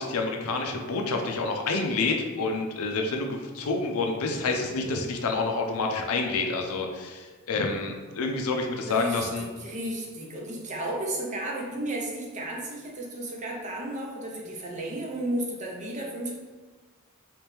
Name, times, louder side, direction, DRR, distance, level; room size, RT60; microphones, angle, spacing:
voice 1, 0.0-9.5, left 3 dB, 80° left, 3 dB, 0.5 m, -28 dB
voice 2, 8.9-16.3, right 1 dB, 35° right, -1 dB, 0.6 m, -33 dB
3.2 x 3.0 x 3.4 m, 1.4 s
head